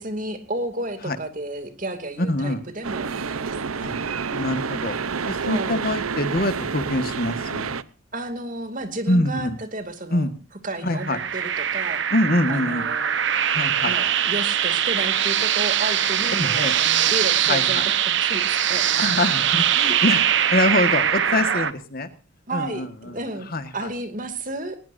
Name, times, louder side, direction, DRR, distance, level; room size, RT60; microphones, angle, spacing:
voice 1, 0.0-3.9 5.4-5.8 8.1-10.3 10.6-12.0 12.5-13.1 13.8-19.2 19.9-20.0 22.5-23.5 23.7-24.8, right 2 dB, 40° right, 8 dB, 2.6 m, -32 dB
voice 2, 2.3-2.6 3.8-4.0 4.3-5.0 5.3-7.8 9.1-9.5 10.1-10.3 10.8-11.2 12.1-12.8 13.5-14.0 16.4-16.7 17.5-17.8 19.0-20.2 20.5-22.1 22.5-23.1 23.5-23.9, left 1 dB, 45° left, 10 dB, 1.6 m, -24 dB
sound 1, 2.8-7.8, right 5 dB, 80° right, 0.8 m, -29 dB
sound 2, 10.9-21.7, right 9 dB, 55° right, 1.1 m, -22 dB
21.5 x 20.0 x 2.7 m, 0.33 s
head